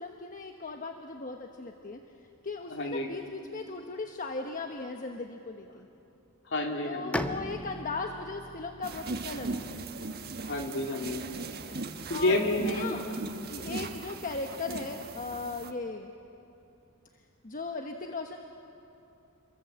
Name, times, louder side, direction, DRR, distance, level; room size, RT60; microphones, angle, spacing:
voice 1, 0.0-2.0 2.4-5.9 6.8-9.7 12.1-13.1 13.6-16.1 17.4-18.4, left 3 dB, 40° left, 4 dB, 1.1 m, -38 dB
voice 2, 2.7-3.1 6.5-7.3 10.4-11.2 11.6-11.8 12.1-13.2 13.5-13.7, left 1 dB, 60° left, 2 dB, 2.8 m, -30 dB
Bowed string instrument, 7.1-10.8, left 1 dB, 5° left, 0.7 m, -39 dB
sound 1, 8.8-15.7, right 3 dB, 50° right, 1.4 m, -39 dB
28.0 x 23.0 x 7.7 m, 2.8 s
head